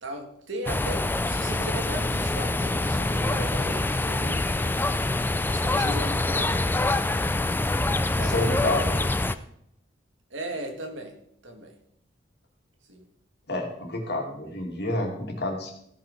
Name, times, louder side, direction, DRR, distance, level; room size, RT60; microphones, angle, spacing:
voice 1, 0.0-4.9 5.5-7.6 7.8-8.7 10.3-11.2 11.4-11.8 12.8-13.1, right 1 dB, 90° right, 4 dB, 1.8 m, -38 dB
sound 1, 0.7-9.4, left 2 dB, 10° left, 0.4 m, -25 dB
voice 2, 8.2-9.1 13.5-15.7, left 1 dB, 60° left, 0 dB, 2.7 m, -29 dB
15.5 x 5.7 x 5.1 m, 0.73 s
head